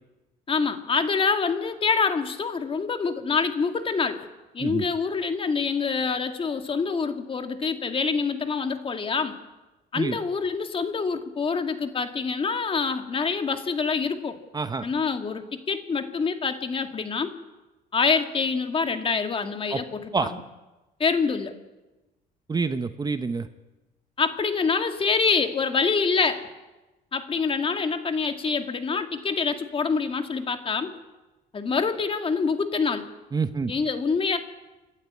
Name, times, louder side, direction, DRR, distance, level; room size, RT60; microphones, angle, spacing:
voice 1, 0.5-4.3 4.5-9.4 9.9-14.4 14.8-17.3 17.9-20.4 21.0-21.5 24.2-26.4 27.1-30.9 31.5-33.1 33.7-34.4, left 5 dB, 30° left, 7 dB, 2.1 m, -26 dB
voice 2, 14.5-14.9 19.7-19.8 20.1-20.3 22.5-23.5 33.3-33.7, right 4 dB, 25° right, 10 dB, 1.0 m, -27 dB
28.0 x 12.0 x 9.7 m, 1.1 s
cardioid pair, 110°, 17 cm